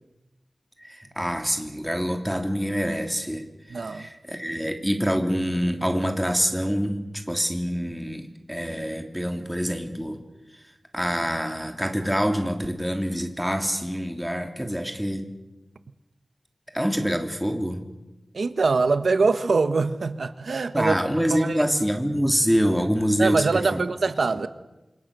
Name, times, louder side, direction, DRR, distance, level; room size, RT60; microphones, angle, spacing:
voice 1, 0.8-3.5 3.7-7.0 7.3-10.2 10.9-15.2 16.7-17.8 20.7-23.8, equal, ahead, 3.2 m, -26 dB
voice 2, 3.7-4.1 18.3-20.9 21.3-21.7 23.2-24.5, right 4 dB, 85° right, 1.2 m, -23 dB
28.5 x 27.0 x 6.8 m
wide cardioid pair, 95°, 0 cm